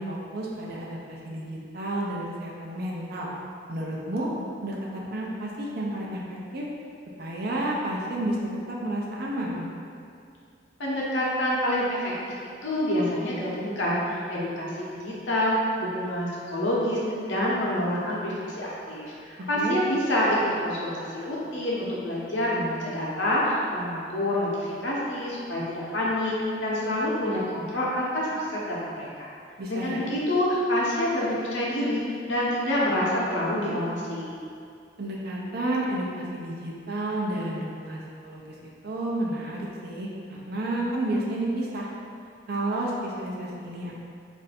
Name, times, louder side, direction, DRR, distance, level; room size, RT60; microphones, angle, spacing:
voice 1, 0.0-3.3 3.7-4.3 4.6-6.7 7.2-9.7 19.4-19.8 29.6-30.0 35.0-41.9 42.5-43.9, right 1 dB, 55° right, -3 dB, 0.6 m, -31 dB
voice 2, 10.8-12.3 12.6-17.0 17.3-29.3 29.7-34.3, left 1 dB, 70° left, -5 dB, 0.9 m, -27 dB
3.3 x 2.6 x 4.1 m, 2.4 s
head